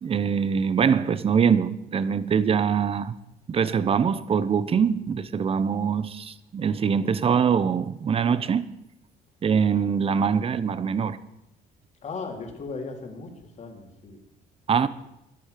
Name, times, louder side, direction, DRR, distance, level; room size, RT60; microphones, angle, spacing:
voice 1, 0.0-3.2 3.5-8.7 9.4-11.2 14.7-14.9, right 6 dB, 35° right, 0.9 m, -23 dB
voice 2, 12.0-13.3 13.6-14.2, left 4 dB, 40° left, 3.4 m, -36 dB
14.0 x 11.5 x 6.7 m
cardioid pair, 110°, 17 cm